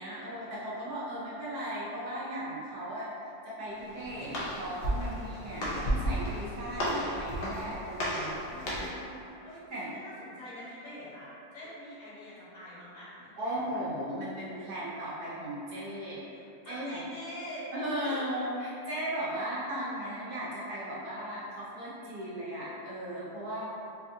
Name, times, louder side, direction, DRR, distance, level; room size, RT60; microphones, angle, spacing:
voice 1, 0.0-3.1 3.4-8.4 9.7-9.9 13.4-16.2 16.7-17.0 17.7-23.6, right 1 dB, 70° right, -8 dB, 1.1 m, -36 dB
Walk footsteps, 3.8-9.1, equal, 80° left, 0.5 m, -33 dB
voice 2, 8.5-13.8 16.3-17.7 18.0-18.3 19.4-19.5, equal, 60° left, -9 dB, 1.4 m, -46 dB
3.5 x 2.7 x 2.5 m, 2.7 s
omnidirectional pair, 1.8 m